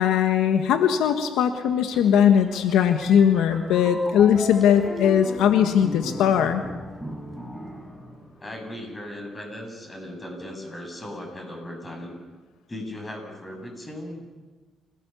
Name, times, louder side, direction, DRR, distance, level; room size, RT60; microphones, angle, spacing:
voice 1, 0.0-6.6, left 8 dB, 90° left, 7 dB, 1.5 m, -20 dB
sound 1, 1.9-8.6, equal, ahead, 6.2 m, -37 dB
voice 2, 8.4-12.2 12.7-14.2, left 1 dB, 20° left, 4 dB, 7.2 m, -37 dB
29.5 x 18.0 x 7.0 m, 1.3 s
cardioid pair, 90°, 0 cm